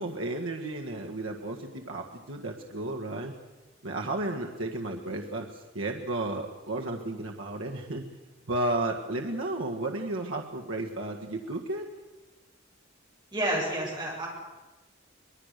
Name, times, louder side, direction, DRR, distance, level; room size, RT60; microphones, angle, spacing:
voice 1, 0.0-3.3 3.8-5.5 5.7-8.0 8.5-11.9, right 2 dB, 90° right, 1 dB, 1.8 m, -33 dB
voice 2, 13.3-14.3, right 1 dB, 25° right, -2 dB, 7.8 m, -29 dB
25.0 x 21.0 x 6.7 m, 1.2 s
head